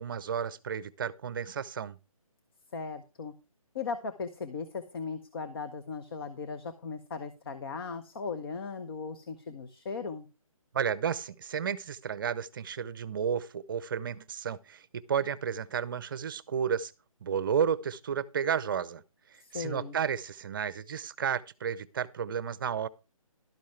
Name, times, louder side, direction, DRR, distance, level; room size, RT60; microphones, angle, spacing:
voice 1, 0.0-2.0 10.7-16.9 17.2-19.0 19.5-22.9, right 7 dB, 35° right, 0.7 m, -32 dB
voice 2, 2.7-3.3 3.7-10.3 19.4-19.9, left 5 dB, 40° left, 1.1 m, -37 dB
12.0 x 10.0 x 3.3 m
figure-of-eight pair, 155°, 18 cm